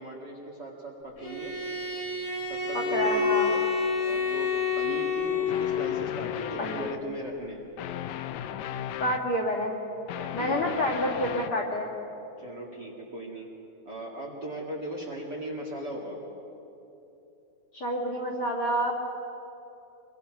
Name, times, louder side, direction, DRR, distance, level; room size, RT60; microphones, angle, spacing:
voice 1, 0.0-1.5 2.5-3.6 4.0-4.5 4.8-7.6 10.2-10.6 12.4-13.5 13.8-16.2, right 1 dB, 35° right, -2 dB, 2.3 m, -38 dB
Bowed string instrument, 1.2-5.9, left 5 dB, 55° left, 4.2 m, -28 dB
voice 2, 2.7-3.5 6.6-6.9 9.0-9.8 10.3-11.9 17.7-19.0, equal, 40° left, 0 dB, 3.3 m, -28 dB
sound 1, 5.5-7.1 7.8-9.3 9.8-11.6, left 11 dB, 75° left, 1.8 m, -36 dB
25.0 x 22.5 x 6.0 m, 3.0 s
omnidirectional pair, 3.8 m